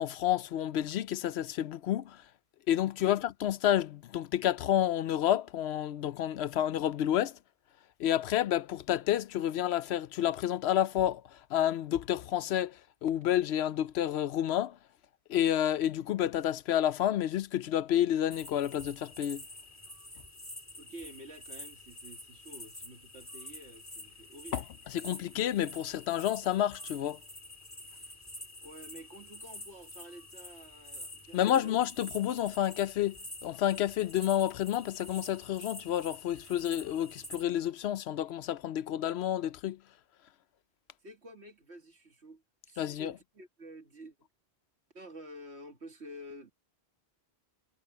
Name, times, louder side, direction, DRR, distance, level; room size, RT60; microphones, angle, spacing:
voice 1, 0.0-2.2 2.7-7.4 8.0-14.8 15.3-19.4 24.5-24.6 24.9-27.2 31.3-39.8 42.8-43.1, left 11 dB, 80° left, 0.8 m, -30 dB
sound 1, 18.3-37.4, left 1 dB, 15° left, 3.2 m, -48 dB
voice 2, 20.8-24.6 28.6-31.7 41.0-44.1 44.9-46.5, right 1 dB, 90° right, 2.4 m, -50 dB
omnidirectional pair, 1.1 m